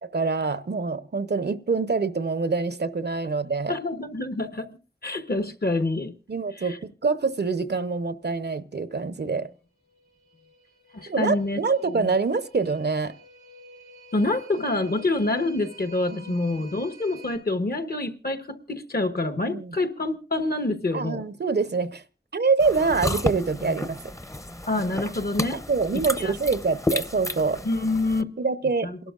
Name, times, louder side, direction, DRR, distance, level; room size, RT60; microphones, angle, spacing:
voice 1, 0.1-3.8 6.3-6.8 7.0-9.5 11.1-13.2 16.1-16.3 19.5-19.8 20.9-22.0 22.3-24.0 25.7-27.6 28.4-28.9, right 4 dB, 75° right, 0.7 m, -25 dB
voice 2, 3.7-4.8 5.0-6.1 6.6-6.8 10.9-12.1 14.1-21.2 24.7-25.6 26.2-26.5 27.6-28.2 28.8-29.0, left 2 dB, 65° left, 1.1 m, -27 dB
sound 1, 9.8-17.4, right 1 dB, 80° left, 4.6 m, -49 dB
sound 2, 22.6-28.2, left 1 dB, 15° left, 0.6 m, -32 dB
28.5 x 12.0 x 2.4 m
wide cardioid pair, 60°, 17 cm